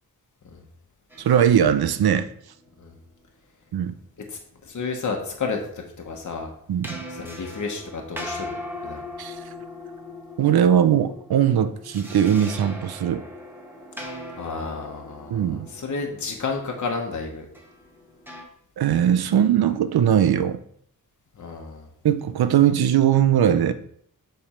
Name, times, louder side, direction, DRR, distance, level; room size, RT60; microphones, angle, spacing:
sound 1, 1.1-3.2 6.8-18.4, left 1 dB, 5° right, 1.2 m, -40 dB
voice 1, 1.2-2.3 3.7-3.9 6.7-7.0 9.2-9.4 10.4-13.2 15.3-15.7 18.8-20.6 22.0-23.7, right 9 dB, 85° right, 11 dB, 0.6 m, -20 dB
voice 2, 4.3-6.5 7.1-9.0 14.4-17.5 21.3-21.9, left 4 dB, 50° left, 2 dB, 1.1 m, -31 dB
7.2 x 3.4 x 5.0 m, 0.64 s
wide cardioid pair, 125°, 37 cm